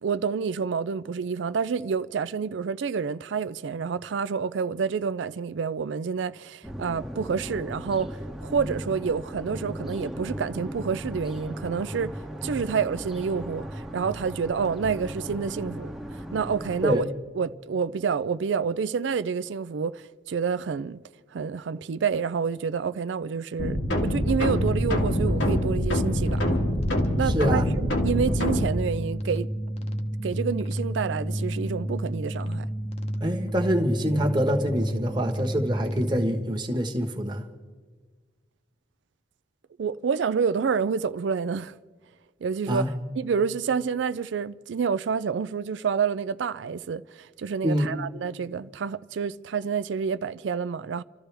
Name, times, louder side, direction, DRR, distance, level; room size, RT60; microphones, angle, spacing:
voice 1, 0.0-15.9 16.3-21.0 21.3-26.6 27.2-29.5 30.2-32.7 39.8-41.7 42.4-42.9 43.1-51.0, right 6 dB, 75° right, 0.4 m, -28 dB
sound 1, 6.6-17.0, equal, ahead, 0.9 m, -37 dB
sound 2, 23.6-28.7, left 1 dB, 80° left, 1.9 m, -25 dB
sound 3, 24.2-36.4, equal, 35° left, 1.0 m, -31 dB
voice 2, 27.3-27.7 33.2-37.4 42.7-42.9 47.6-47.9, equal, 25° right, 1.3 m, -25 dB
29.5 x 13.5 x 3.4 m
head